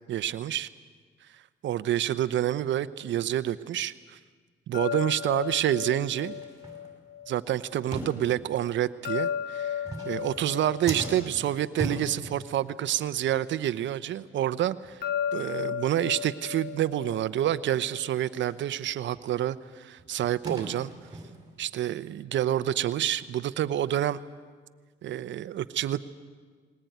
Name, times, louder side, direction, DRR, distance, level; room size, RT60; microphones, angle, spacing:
voice 1, 0.1-0.7 1.6-4.2 4.7-6.3 7.3-15.0 15.3-20.9 21.6-24.2 25.0-26.0, right 12 dB, 70° right, 15 dB, 0.8 m, -28 dB
sound 1, 4.7-7.8 9.0-12.6 15.0-18.1, left 9 dB, 50° left, 1.0 m, -35 dB
sound 2, 5.4-5.6 6.2-7.3 7.9-8.8 9.7-12.9 13.2-13.4 13.7-13.9 14.4-14.5 14.8-15.0 15.4-15.5 15.9-16.0 16.4-16.5 18.5-18.6 19.1-21.6, right 2 dB, 20° right, 5.6 m, -39 dB
20.5 x 19.5 x 9.3 m, 1.5 s
cardioid pair, 90°, 20 cm